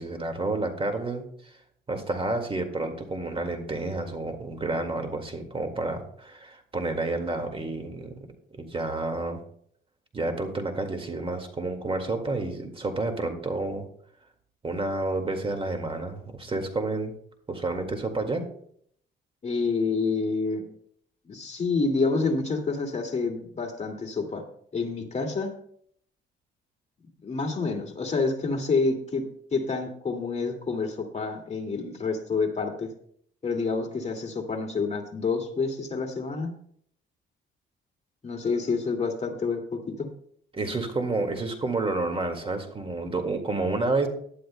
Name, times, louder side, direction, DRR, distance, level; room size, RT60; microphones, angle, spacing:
voice 1, 0.0-1.5 1.9-8.1 8.5-9.4 10.1-13.8 14.6-17.1 17.5-18.4 40.5-44.1, right 2 dB, 25° right, 5 dB, 2.0 m, -30 dB
voice 2, 19.4-20.6 21.3-24.4 24.7-25.5 27.2-29.2 29.5-32.9 33.4-36.5 38.2-40.1, left 4 dB, 35° left, 2 dB, 2.2 m, -28 dB
18.5 x 11.5 x 2.2 m, 0.65 s
cardioid pair, 90°, 20 cm